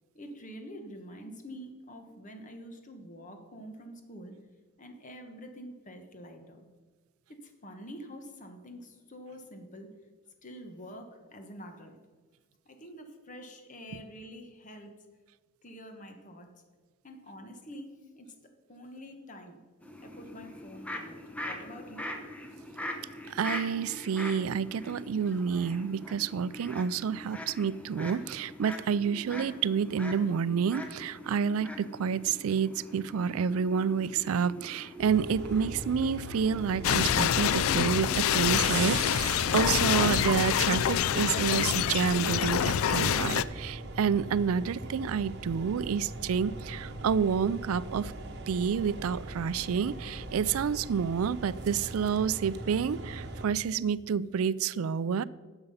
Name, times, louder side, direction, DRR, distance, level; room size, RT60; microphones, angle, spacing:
voice 1, 0.1-4.3 4.8-6.7 7.4-9.9 10.4-12.0 12.7-14.9 15.6-16.5 17.0-18.3 18.7-19.6 20.0-22.1, equal, 35° left, 5 dB, 1.2 m, -46 dB
sound 1, 19.8-38.8, left 1 dB, 5° left, 0.8 m, -43 dB
voice 2, 23.3-48.1 48.5-55.2, right 6 dB, 85° right, 19 dB, 0.4 m, -29 dB
sound 2, 35.0-53.5, right 2 dB, 50° right, 1.0 m, -40 dB
sound 3, 36.8-43.4, left 9 dB, 80° left, 0.4 m, -26 dB
10.5 x 7.0 x 5.5 m, 1.4 s
head